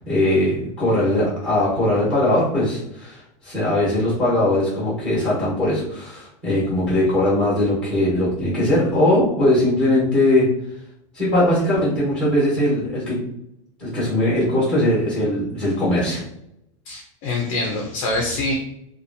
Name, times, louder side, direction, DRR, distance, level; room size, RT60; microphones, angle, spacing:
voice 1, 0.1-10.5 11.1-13.2 13.8-16.2, left 1 dB, ahead, -8 dB, 1.2 m, -20 dB
voice 2, 16.9-18.5, left 2 dB, 40° left, 0 dB, 0.5 m, -25 dB
2.8 x 2.3 x 2.6 m, 0.79 s
supercardioid pair, 175°, 17 cm